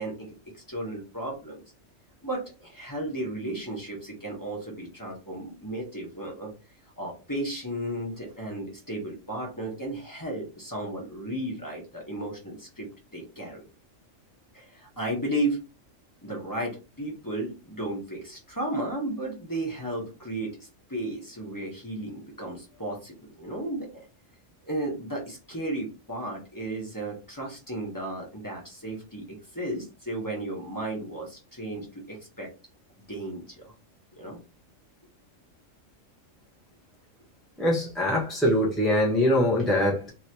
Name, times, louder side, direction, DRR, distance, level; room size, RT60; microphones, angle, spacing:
voice 1, 0.0-1.6 2.2-6.5 7.0-13.6 14.5-15.6 16.2-24.1 24.6-32.5 33.1-33.7 34.2-34.4, right 1 dB, 15° left, 1.1 m, -34 dB
voice 2, 37.6-40.1, left 1 dB, ahead, 0.8 m, -23 dB
3.1 x 3.0 x 2.9 m
omnidirectional pair, 1.4 m